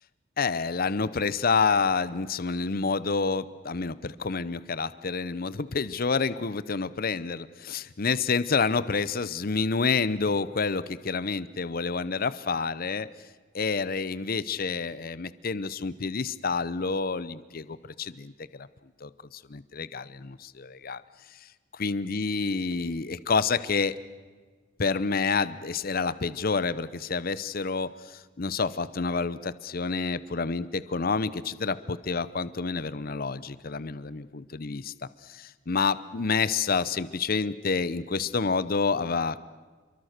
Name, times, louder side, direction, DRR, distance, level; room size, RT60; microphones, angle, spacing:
voice 1, 0.4-13.1 13.5-18.3 18.6-18.7 19.0-21.0 21.7-24.0 24.8-34.9 35.3-39.4, left 4 dB, 55° left, 16 dB, 0.8 m, -28 dB
29.0 x 23.0 x 6.6 m, 1.4 s
head